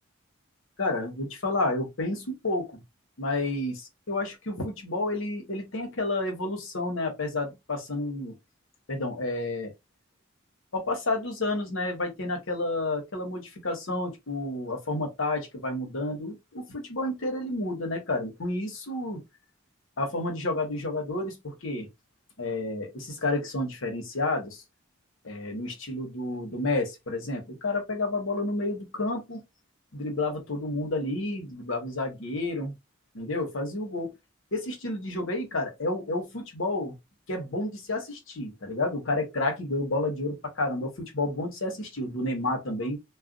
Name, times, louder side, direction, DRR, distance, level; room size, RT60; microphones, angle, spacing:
voice 1, 0.8-2.8 3.2-8.3 8.9-9.7 10.7-19.2 20.0-21.9 22.4-24.6 25.2-29.4 29.9-32.7 33.1-34.1 34.5-36.9 37.3-43.0, left 2 dB, 70° left, 1.0 m, -30 dB
2.4 x 2.2 x 3.7 m
head